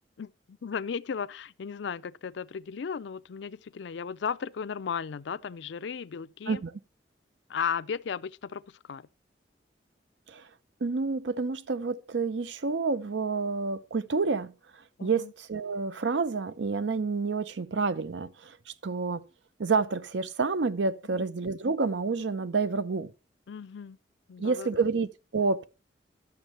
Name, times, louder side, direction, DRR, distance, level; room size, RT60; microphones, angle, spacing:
voice 1, 0.2-6.6 7.5-9.1 15.0-15.3 21.1-21.3 23.5-24.0 24.3-24.7, left 6 dB, 75° left, 0.4 m, -35 dB
voice 2, 10.8-14.5 15.0-18.6 18.8-19.3 19.6-23.1 24.4-25.6, right 4 dB, 75° right, 0.6 m, -29 dB
11.5 x 7.2 x 4.2 m
head